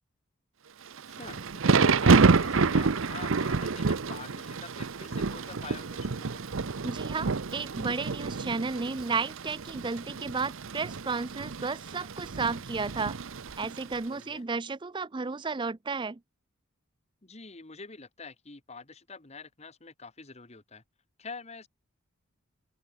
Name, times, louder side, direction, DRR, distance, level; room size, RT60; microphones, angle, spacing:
Thunder / Rain, 0.9-14.0, right 4 dB, 70° right, 0.8 m, -28 dB
voice 1, 1.1-6.4 14.1-14.4 17.2-20.8 21.2-21.7, left 4 dB, 30° left, 1.4 m, -46 dB
voice 2, 6.8-13.2 13.6-16.2, right 4 dB, 25° right, 0.4 m, -33 dB
open air
head